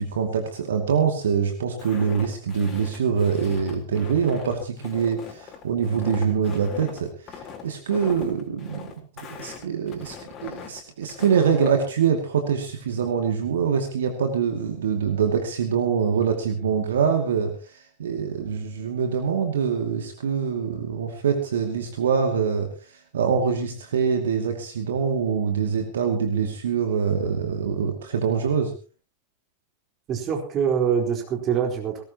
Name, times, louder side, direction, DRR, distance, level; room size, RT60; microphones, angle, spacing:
voice 1, 0.0-8.9 9.3-10.2 10.4-22.7 23.1-28.7, right 6 dB, 65° right, 5 dB, 2.4 m, -24 dB
Walk footsteps, 1.8-11.8, left 7 dB, 30° left, 3.9 m, -40 dB
voice 2, 30.1-32.0, right 7 dB, 30° right, 2 dB, 4.3 m, -24 dB
20.0 x 18.0 x 3.0 m, 0.37 s
figure-of-eight pair, 90°, 0 cm